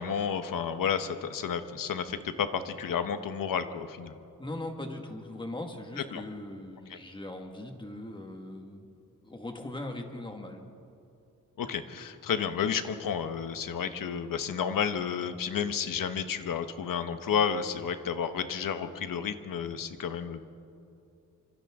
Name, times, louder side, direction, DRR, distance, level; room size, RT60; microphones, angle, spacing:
voice 1, 0.0-4.2 6.1-6.2 11.6-20.4, left 7 dB, 85° left, 9 dB, 1.2 m, -31 dB
voice 2, 4.4-10.6, left 1 dB, 15° left, 3 dB, 1.8 m, -40 dB
28.5 x 26.0 x 3.7 m, 2.6 s
wide cardioid pair, 165°, 32 cm